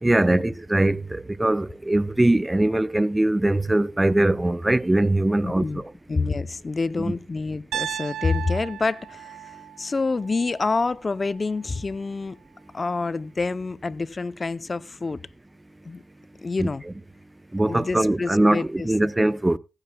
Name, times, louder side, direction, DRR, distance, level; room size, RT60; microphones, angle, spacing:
voice 1, 0.0-5.6 16.6-16.7 17.5-19.6, right 1 dB, 10° right, 0.6 m, -21 dB
voice 2, 5.4-5.8 6.1-12.4 12.7-15.2 15.8-16.0 16.4-16.8 17.7-18.9, left 3 dB, 25° left, 0.6 m, -27 dB
Piano, 7.7-11.8, right 11 dB, 70° right, 0.7 m, -36 dB
16.0 x 14.5 x 2.2 m
cardioid pair, 90°, 0 cm